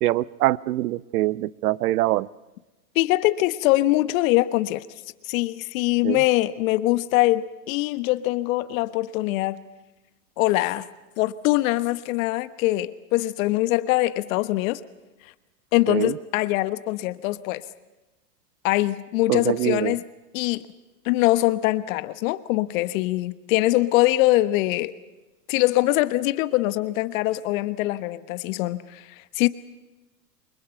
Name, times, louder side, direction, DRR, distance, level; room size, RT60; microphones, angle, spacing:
voice 1, 0.0-2.3 6.0-6.2 15.9-16.2 19.3-20.0, right 16 dB, 65° right, 0.9 m, -24 dB
voice 2, 2.9-4.8 5.3-9.6 10.4-10.9 11.2-14.8 15.7-17.6 18.6-20.0 20.3-20.6 21.0-24.9 25.5-29.0 29.4-29.5, left 17 dB, 55° left, 1.2 m, -23 dB
29.0 x 24.5 x 5.7 m
hypercardioid pair, 105°, 49 cm